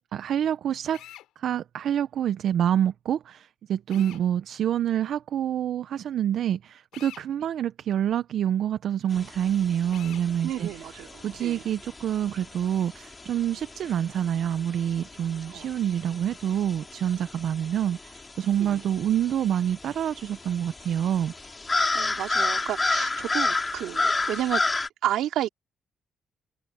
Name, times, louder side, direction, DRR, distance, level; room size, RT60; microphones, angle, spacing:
voice 1, 0.1-1.0 1.4-10.9 11.2-21.3, right 10 dB, 70° right, 0.7 m, -27 dB
Drill, 0.9-1.3 3.9-4.2 6.9-7.3 9.9-10.3, left 13 dB, 90° left, 3.3 m, -45 dB
sound 1, 9.1-24.9, left 3 dB, 25° left, 4.3 m, -32 dB
voice 2, 10.4-11.6 15.5-15.6 18.6-18.8 21.9-24.6 25.0-25.5, right 12 dB, 85° right, 3.3 m, -31 dB
cardioid pair, 90°, 0 cm